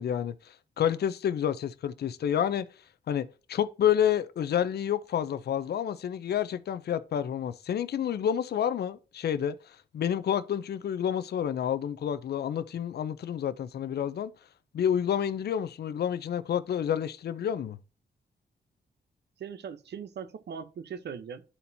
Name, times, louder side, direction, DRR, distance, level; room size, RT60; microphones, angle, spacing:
voice 1, 0.0-2.7 3.1-14.3 14.7-17.8, left 9 dB, 65° left, 0.5 m, -29 dB
voice 2, 19.4-21.4, right 7 dB, 70° right, 0.8 m, -40 dB
12.0 x 4.3 x 2.7 m
cardioid pair, 85°, 18 cm